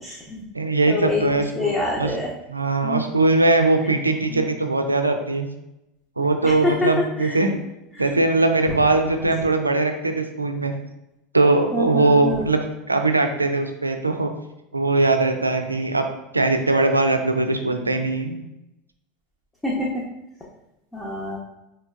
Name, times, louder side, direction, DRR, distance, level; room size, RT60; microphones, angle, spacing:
voice 1, 0.0-0.4 0.9-2.3 2.8-3.0 4.3-4.5 6.4-6.9 7.2-7.4 8.0-8.2 8.7-8.8 11.7-12.5 19.6-19.9 20.9-21.4, left 2 dB, 10° left, -5 dB, 0.9 m, -26 dB
voice 2, 0.5-1.7 2.0-2.1 2.5-5.5 6.2-7.5 8.0-10.7 11.3-12.6 12.9-14.3 14.7-16.1 16.3-18.4, right 2 dB, 90° right, 6 dB, 0.4 m, -20 dB
4.4 x 3.1 x 2.5 m, 0.90 s
figure-of-eight pair, 80°, 0 cm